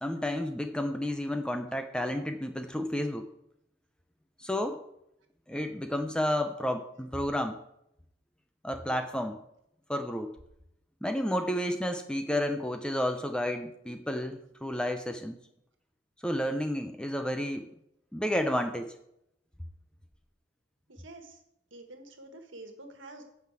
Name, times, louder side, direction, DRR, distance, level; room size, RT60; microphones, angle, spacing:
voice 1, 0.0-3.3 4.4-4.8 5.5-7.6 8.6-9.4 9.9-10.4 11.0-15.4 16.2-17.7 18.1-18.9, left 1 dB, 5° left, 6 dB, 0.6 m, -31 dB
voice 2, 20.9-21.4 21.7-23.2, right 2 dB, 70° right, 5 dB, 1.6 m, -48 dB
9.1 x 5.8 x 7.5 m, 0.79 s
head